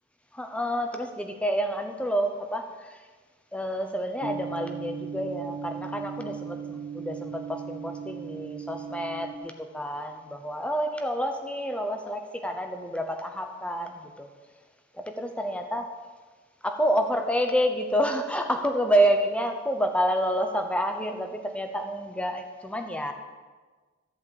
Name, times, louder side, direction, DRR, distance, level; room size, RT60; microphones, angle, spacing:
voice 1, 0.3-3.1 3.5-14.3 14.9-15.9 16.6-23.1, equal, 5° left, 5 dB, 0.8 m, -28 dB
sound 1, 4.2-9.4, right 7 dB, 35° right, 0.5 m, -37 dB
14.0 x 5.1 x 8.7 m, 1.4 s
head